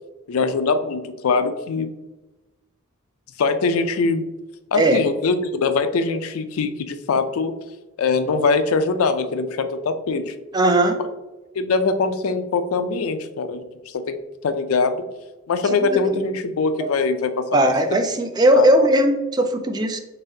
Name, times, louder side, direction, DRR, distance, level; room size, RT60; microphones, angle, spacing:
voice 1, 0.3-1.9 3.4-4.3 4.7-7.5 8.0-10.3 11.6-14.2 14.4-15.0 15.5-17.7 18.5-18.7, left 4 dB, 75° left, 10 dB, 0.4 m, -22 dB
voice 2, 10.5-11.0 15.6-16.0 16.8-16.9 17.5-20.0, right 1 dB, 20° right, 6 dB, 0.3 m, -18 dB
4.0 x 3.6 x 2.6 m, 1.1 s
head